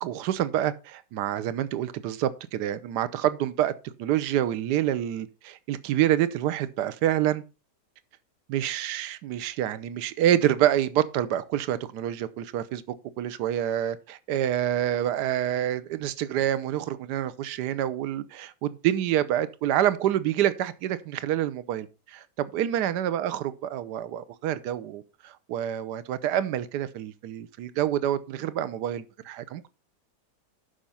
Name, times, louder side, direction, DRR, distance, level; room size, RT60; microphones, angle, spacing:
voice 1, 0.0-3.7 4.0-7.4 8.5-29.7, right 11 dB, 80° right, 1.3 m, -27 dB
11.5 x 5.0 x 5.6 m
omnidirectional pair, 1.8 m